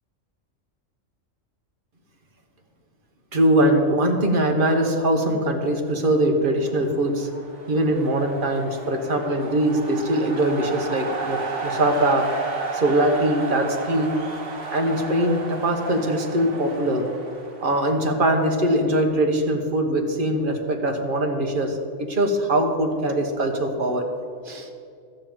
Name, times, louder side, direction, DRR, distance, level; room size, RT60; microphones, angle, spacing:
voice 1, 3.3-7.3 7.7-12.3 12.7-14.2 14.7-17.0 17.6-24.1 24.4-24.7, right 1 dB, 45° right, 3 dB, 1.4 m, -22 dB
sound 1, 6.5-18.5, right 4 dB, 70° right, 1.7 m, -33 dB
13.0 x 5.5 x 8.9 m, 2.4 s
omnidirectional pair, 1.3 m